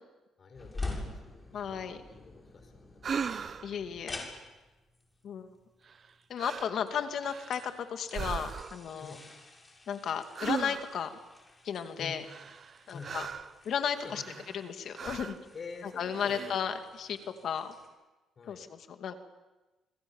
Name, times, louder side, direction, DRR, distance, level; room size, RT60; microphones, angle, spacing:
voice 1, 0.4-1.2 1.5-3.4 9.0-9.2 12.0-12.2 12.9-13.2 13.9-14.7 15.5-16.7 18.4-18.7, left 4 dB, 45° left, 7 dB, 5.1 m, -48 dB
sound 1, 0.5-17.9, left 2 dB, 25° left, 7.1 m, -47 dB
voice 2, 1.5-2.0 3.6-4.3 5.2-5.5 6.3-9.1 9.9-11.1 11.6-12.2 12.9-13.3 13.6-14.2 14.5-15.4 16.0-17.2 17.4-17.7 18.5-19.2, left 8 dB, 65° left, 7 dB, 2.3 m, -34 dB
sound 2, 3.0-3.8 5.9-6.1 6.4-6.8 7.2-7.8 8.1-8.9 10.3-11.1 12.2-13.6 14.1-14.7 14.9-15.4 16.1-16.7, right 6 dB, 50° right, 1.1 m, -38 dB
28.5 x 21.5 x 7.3 m, 1.1 s
cardioid pair, 90°, 0 cm